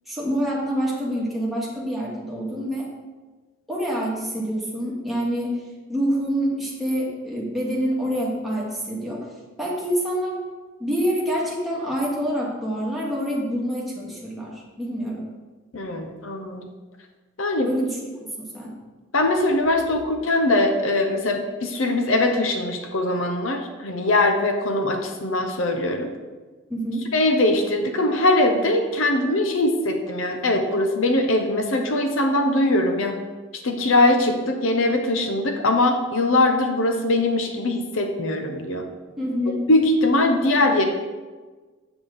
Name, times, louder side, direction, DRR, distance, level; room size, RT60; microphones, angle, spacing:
voice 1, 0.1-2.9 3.7-5.6 5.9-9.3 9.6-10.4 10.8-15.3 17.6-18.7 26.7-27.1 39.2-39.7, equal, ahead, -6 dB, 1.7 m, -26 dB
voice 2, 15.7-16.7 17.4-17.7 19.1-26.1 27.1-33.1 33.6-38.8 39.7-40.8, left 2 dB, 70° left, 5 dB, 0.8 m, -21 dB
8.1 x 7.2 x 3.5 m, 1.3 s
head